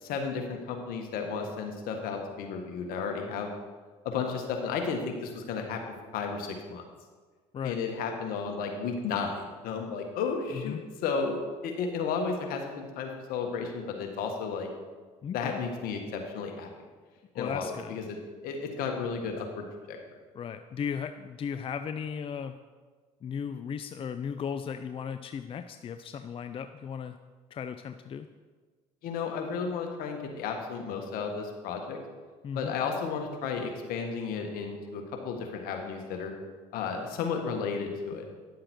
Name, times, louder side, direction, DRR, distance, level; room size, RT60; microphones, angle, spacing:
voice 1, 0.0-3.5 4.0-5.8 6.1-6.8 7.6-11.4 11.6-14.7 15.3-16.7 17.3-18.2 18.4-20.0 29.0-32.0 32.5-36.3 36.7-38.2, left 5 dB, 65° left, 3 dB, 1.7 m, -33 dB
voice 2, 15.2-15.6 17.3-18.0 20.4-22.5 23.2-27.1 27.5-28.3 32.4-32.7, left 7 dB, 35° left, 9 dB, 0.5 m, -36 dB
10.5 x 7.5 x 4.5 m, 1.4 s
hypercardioid pair, 70°, 16 cm